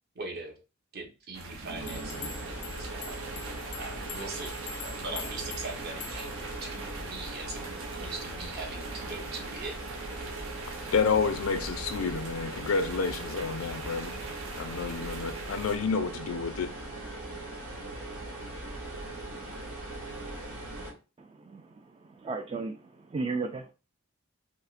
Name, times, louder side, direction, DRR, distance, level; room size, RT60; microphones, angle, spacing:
voice 1, 0.1-0.5 0.9-2.3 2.8-3.3 3.8-4.5 4.8-9.8, right 3 dB, 50° right, 1.1 m, -41 dB
sound 1, 1.3-15.8, right 3 dB, 70° right, 0.8 m, -43 dB
sound 2, 1.8-20.9, right 2 dB, 90° right, 1.4 m, -40 dB
sound 3, 1.9-6.5, left 6 dB, 40° left, 0.5 m, -44 dB
voice 2, 10.7-14.2 14.6-16.7, left 5 dB, 90° left, 0.5 m, -29 dB
voice 3, 21.2-21.6 22.2-22.8 23.1-23.7, right 3 dB, 25° right, 0.3 m, -34 dB
5.1 x 2.1 x 2.5 m
head